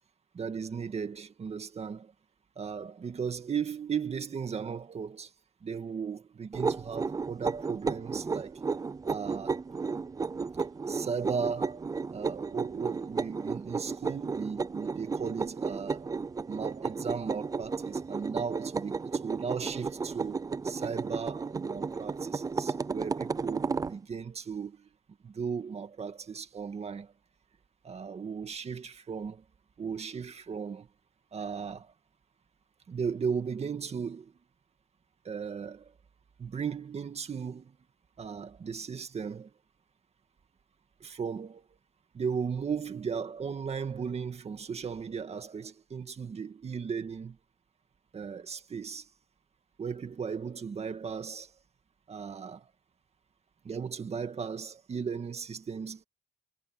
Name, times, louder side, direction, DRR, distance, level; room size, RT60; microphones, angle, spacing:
voice 1, 0.3-2.1 2.6-5.3 5.6-8.6 9.0-9.6 10.9-16.1 16.5-24.9 25.2-27.1 27.8-29.4 29.8-30.9 31.3-31.9 32.9-34.3 35.2-35.9 36.4-37.7 38.2-39.5 41.0-41.7 42.1-47.4 48.1-49.1 49.8-51.5 52.1-52.7 53.6-56.0, right 6 dB, 40° right, 2.1 m, -36 dB
sound 1, 6.5-24.0, right 4 dB, 20° right, 0.4 m, -33 dB
cardioid pair, 130°, 17 cm